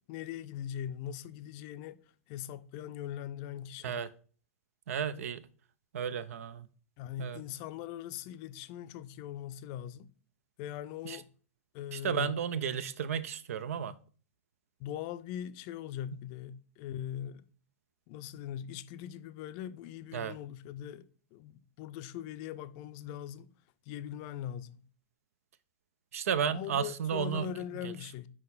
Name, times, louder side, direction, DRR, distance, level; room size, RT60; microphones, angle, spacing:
voice 1, 0.1-2.0 2.3-4.0 7.0-10.1 10.6-11.3 11.7-12.3 14.8-17.4 18.1-23.5 23.9-24.8 26.5-28.3, left 10 dB, 40° left, 0.5 m, -41 dB
voice 2, 4.9-5.5 5.9-6.7 7.2-7.4 11.0-11.2 11.9-13.9 20.1-20.3 26.1-27.5 27.8-27.9, right 7 dB, 65° right, 0.5 m, -33 dB
5.6 x 4.7 x 4.0 m
figure-of-eight pair, 100°, 8 cm